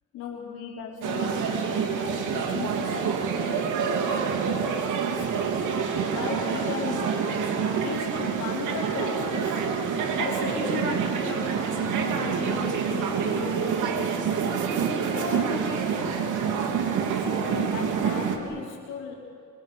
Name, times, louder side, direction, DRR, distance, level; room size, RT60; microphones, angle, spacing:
voice 1, 0.1-7.3 7.8-9.7 10.2-14.7 15.1-19.3, left 6 dB, 85° left, -4 dB, 3.5 m, -38 dB
sound 1, 1.0-18.4, right 6 dB, 80° right, 3.1 m, -27 dB
29.5 x 24.0 x 6.9 m, 2.2 s
cardioid pair, 90°, 30 cm